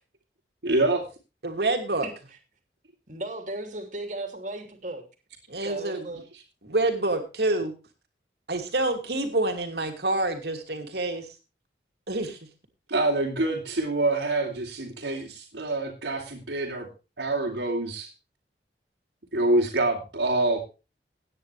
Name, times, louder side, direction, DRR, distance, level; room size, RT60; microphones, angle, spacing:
voice 1, 0.6-1.0 12.9-16.9 17.2-18.1 19.3-20.6, right 2 dB, 85° right, -5 dB, 3.0 m, -26 dB
voice 2, 1.4-2.1 5.5-6.2 6.6-7.7 8.5-11.3 12.1-12.4, right 2 dB, 65° right, 5 dB, 2.8 m, -27 dB
voice 3, 3.1-5.0 5.6-6.2, right 2 dB, 45° right, 5 dB, 2.8 m, -35 dB
17.0 x 9.6 x 3.4 m, 0.31 s
head